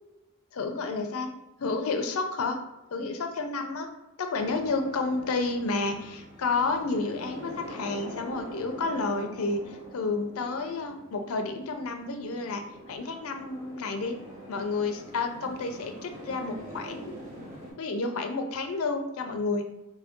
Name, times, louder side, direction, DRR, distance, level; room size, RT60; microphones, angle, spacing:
voice 1, 0.5-1.3 1.6-2.6 2.9-3.9 4.2-14.2 14.5-17.1 17.8-19.6, left 3 dB, 75° left, 6 dB, 0.5 m, -30 dB
sound 1, 4.3-17.7, equal, 35° right, 1.2 m, -44 dB
3.2 x 2.6 x 3.5 m, 0.98 s
head